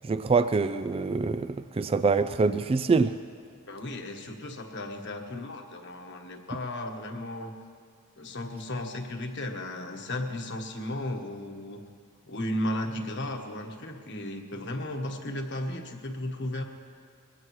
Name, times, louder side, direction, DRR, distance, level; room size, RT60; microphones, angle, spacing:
voice 1, 0.0-3.1, right 4 dB, 25° right, 11 dB, 0.3 m, -25 dB
voice 2, 3.7-7.5 8.2-11.8 12.3-16.6, left 1 dB, 55° left, 3 dB, 1.3 m, -35 dB
22.5 x 17.5 x 3.2 m, 2.2 s
head